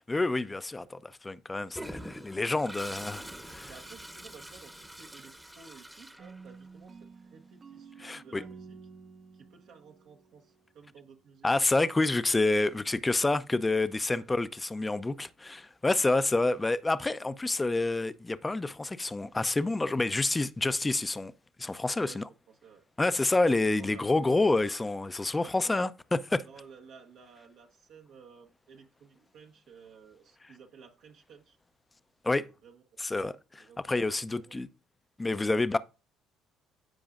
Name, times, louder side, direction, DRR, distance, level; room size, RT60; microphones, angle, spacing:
voice 1, 0.0-3.7 8.0-8.4 11.4-21.3 21.6-22.2 23.0-26.4 32.2-32.5 33.0-34.7 35.2-35.8, left 2 dB, 20° left, 0.6 m, -28 dB
Toilet flush, 1.7-6.8, right 1 dB, 5° right, 1.0 m, -45 dB
voice 2, 3.7-8.8 9.3-11.6 14.1-14.3 22.0-23.2 23.8-24.1 25.6-25.9 26.4-31.6 32.3-33.0 33.5-34.5, right 6 dB, 70° right, 1.1 m, -55 dB
sound 1, 6.2-11.1, right 5 dB, 40° right, 0.8 m, -51 dB
14.0 x 4.8 x 2.5 m
hypercardioid pair, 65°, 0 cm